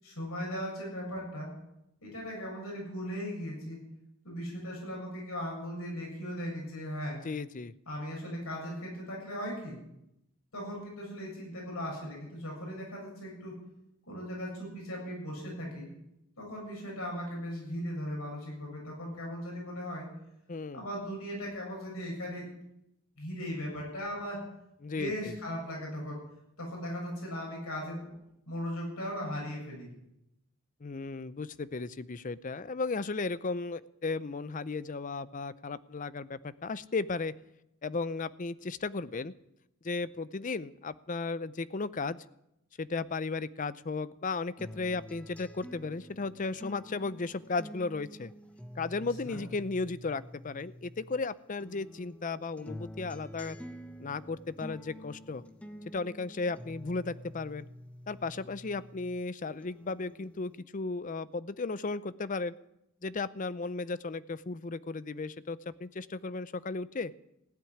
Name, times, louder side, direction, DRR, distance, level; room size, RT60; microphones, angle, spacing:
voice 1, 0.0-1.5 2.0-3.8 4.2-7.2 7.9-9.8 10.5-13.6 14.1-15.9 16.4-20.0 20.7-22.5 23.2-24.4 24.9-26.2 26.6-28.1 28.5-29.9 49.2-49.4, equal, 90° left, -2 dB, 7.4 m, -38 dB
voice 2, 7.2-7.7 20.5-20.8 24.8-25.3 30.8-37.3 37.8-39.3 39.8-42.2 42.8-48.3 48.8-53.6 54.0-55.4 55.9-57.7 58.1-62.5 63.0-67.1, left 3 dB, 35° left, 16 dB, 0.5 m, -35 dB
sound 1, 44.6-51.2 51.6-59.2 59.6-60.6, equal, 5° left, 0.9 m, -48 dB
16.0 x 7.5 x 9.9 m, 0.84 s
head